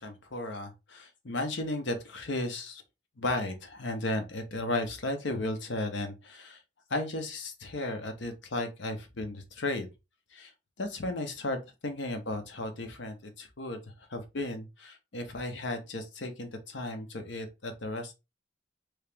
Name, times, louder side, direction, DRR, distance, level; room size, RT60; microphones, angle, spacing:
voice 1, 0.0-2.8 3.2-6.6 6.9-9.9 10.3-10.5 10.8-13.8 14.1-18.1, left 2 dB, 85° left, 0.9 m, -35 dB
3.1 x 2.9 x 3.3 m
head